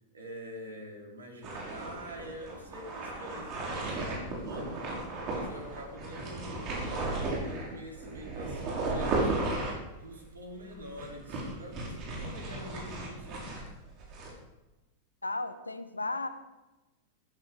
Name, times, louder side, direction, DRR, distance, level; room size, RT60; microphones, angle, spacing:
voice 1, 0.1-5.0 5.3-13.6, equal, 75° right, 0 dB, 4.7 m, -46 dB
sound 1, 1.4-14.3, right 2 dB, 35° right, 6.0 m, -35 dB
voice 2, 15.2-16.3, left 2 dB, 80° left, 11 dB, 1.3 m, -34 dB
15.5 x 15.0 x 5.5 m, 1.0 s
figure-of-eight pair, 90°, 0 cm